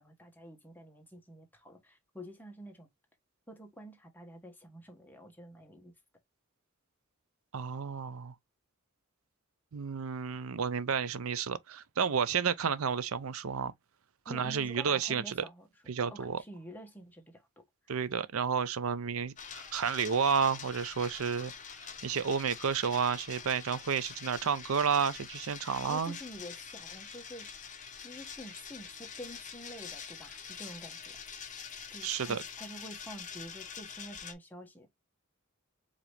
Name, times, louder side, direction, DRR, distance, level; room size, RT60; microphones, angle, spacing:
voice 1, 0.0-2.9 3.5-5.9 14.3-15.7 16.1-17.6 25.8-27.5 28.0-31.2 31.9-34.9, equal, 10° left, 1.2 m, -48 dB
voice 2, 7.5-8.3 9.7-13.7 14.3-15.4 15.9-16.4 17.9-21.5 22.0-26.2 32.0-32.4, right 6 dB, 75° right, 0.6 m, -31 dB
sound 1, 19.4-34.3, left 7 dB, 35° left, 0.9 m, -45 dB
4.9 x 2.9 x 3.4 m
head